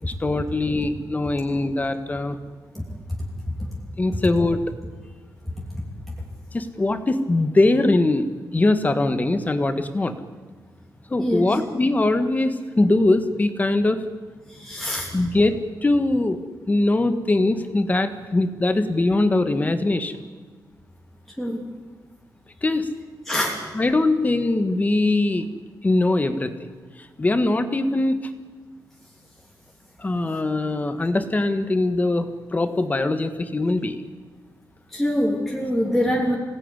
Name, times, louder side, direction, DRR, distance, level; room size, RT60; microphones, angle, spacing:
voice 1, 0.0-2.4 4.0-4.6 6.5-8.3 8.5-10.2 11.1-14.0 15.1-16.4 16.7-20.1 22.6-22.9 23.7-25.5 25.8-26.5 27.2-28.3 30.0-34.0 35.8-35.9, left 2 dB, 20° left, 9 dB, 1.5 m, -21 dB
voice 2, 14.6-15.1 21.4-21.6 23.3-23.6 34.9-36.4, equal, ahead, -3 dB, 3.0 m, -24 dB
26.0 x 18.0 x 9.9 m, 1.4 s
wide cardioid pair, 175°, 7 cm